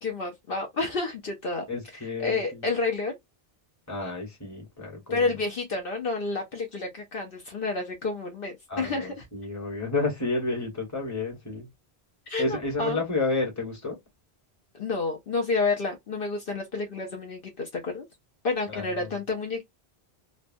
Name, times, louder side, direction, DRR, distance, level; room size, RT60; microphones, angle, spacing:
voice 1, 0.0-1.6 2.2-3.2 5.1-9.2 12.3-13.0 14.7-18.0 18.4-19.6, left 3 dB, 65° left, 0.9 m, -29 dB
voice 2, 1.7-2.6 3.9-5.3 8.7-11.7 12.4-14.0 18.7-19.1, left 3 dB, 15° left, 1.2 m, -31 dB
3.2 x 2.2 x 2.5 m
omnidirectional pair, 1.1 m